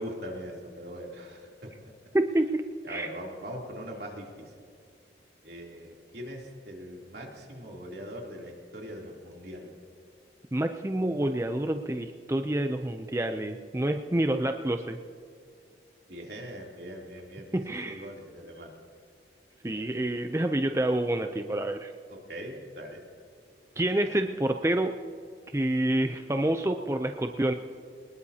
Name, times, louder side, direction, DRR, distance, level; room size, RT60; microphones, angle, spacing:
voice 1, 0.0-1.9 2.8-4.5 5.4-9.7 16.1-18.7 19.6-19.9 22.1-23.0, equal, 70° right, -1 dB, 3.1 m, -41 dB
voice 2, 2.1-2.6 2.9-3.1 10.5-15.0 17.5-18.0 19.6-21.9 23.8-25.0 25.5-27.5, right 1 dB, 15° right, 6 dB, 0.5 m, -28 dB
23.0 x 20.5 x 2.8 m, 2.3 s
head